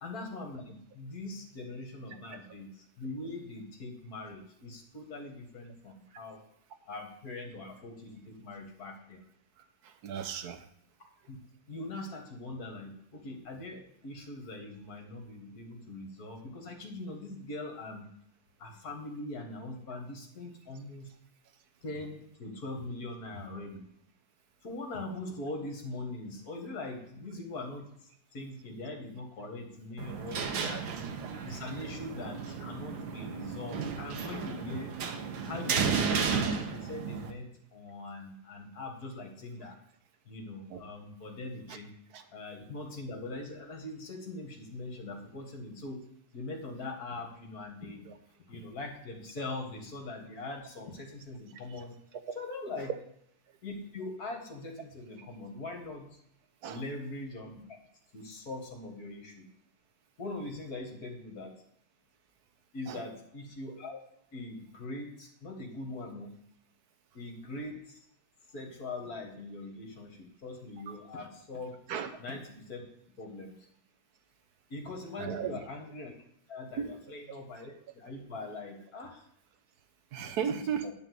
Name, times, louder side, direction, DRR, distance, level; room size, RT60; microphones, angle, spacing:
voice 1, 0.0-6.4 6.9-9.2 11.3-11.4 11.7-18.1 18.6-21.1 21.8-23.8 24.6-27.9 28.3-30.8 31.4-34.9 35.5-39.8 40.3-41.9 42.3-46.0 46.3-48.1 48.5-51.9 52.4-52.9 53.6-56.1 56.7-57.8 58.1-59.5 60.2-61.5 62.7-64.0 64.3-66.3 67.1-68.0 68.5-71.8 72.2-72.8 73.2-73.6 74.7-76.1 76.5-79.2 80.5-80.9, left 2 dB, 50° left, 2 dB, 2.0 m, -42 dB
voice 2, 2.1-2.6 9.8-10.7 30.6-30.8 40.7-40.8 41.7-41.8 42.1-42.2 48.1-48.2 51.7-51.9 52.3-52.4 56.6-56.8 62.9-63.0 71.9-72.1 75.2-75.5 76.8-76.9 80.1-80.9, right 8 dB, 60° right, 9 dB, 1.2 m, -36 dB
sound 1, 30.0-37.3, right 6 dB, 75° right, 1.7 m, -33 dB
10.5 x 4.1 x 7.7 m, 0.70 s
omnidirectional pair, 2.2 m